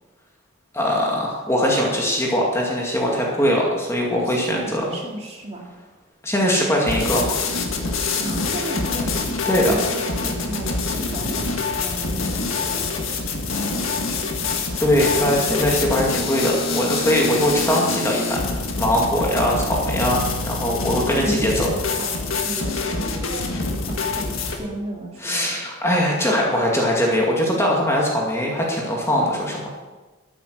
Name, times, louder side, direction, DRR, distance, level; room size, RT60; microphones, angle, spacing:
voice 1, 0.7-4.8 6.2-7.5 9.4-9.7 14.8-21.7 25.2-29.7, equal, 15° left, -2 dB, 2.1 m, -21 dB
voice 2, 4.1-5.7 8.1-9.2 9.5-13.1 13.5-14.6 21.1-25.4, right 1 dB, 30° right, -1 dB, 2.5 m, -34 dB
sound 1, 6.9-24.6, left 3 dB, 75° left, 1.8 m, -25 dB
13.0 x 8.9 x 6.5 m, 1.2 s
head